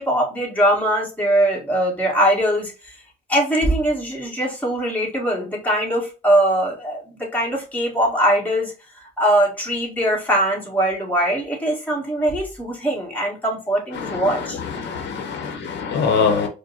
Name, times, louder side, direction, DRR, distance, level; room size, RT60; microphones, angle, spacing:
voice 1, 0.0-2.9 3.3-8.7 9.2-14.6, right 1 dB, 10° left, -3 dB, 1.6 m, -21 dB
voice 2, 14.8-16.5, left 5 dB, 90° left, 4 dB, 0.8 m, -23 dB
4.8 x 2.1 x 2.8 m, 0.31 s
cardioid pair, 115°, 18 cm